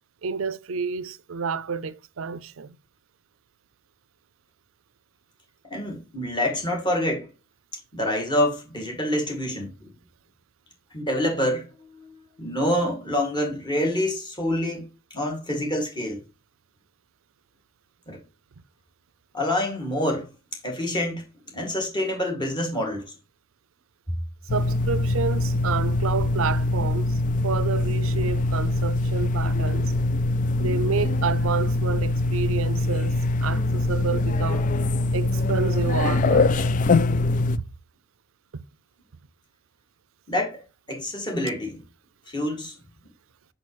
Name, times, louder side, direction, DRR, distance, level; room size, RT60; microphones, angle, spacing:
voice 1, 0.2-2.8 24.5-27.2 27.4-29.9 30.6-33.2 33.4-34.7 35.1-36.5, right 5 dB, 80° right, 0.5 m, -29 dB
voice 2, 5.6-7.3 7.9-9.9 10.9-11.7 11.9-16.2 18.1-18.2 19.3-20.3 20.6-21.2 21.5-23.1 40.3-40.6 40.9-41.8 42.3-42.8, left 1 dB, 20° left, 2.2 m, -27 dB
sound 1, 24.5-37.6, left 2 dB, 40° left, 0.3 m, -23 dB
6.2 x 6.2 x 3.1 m
head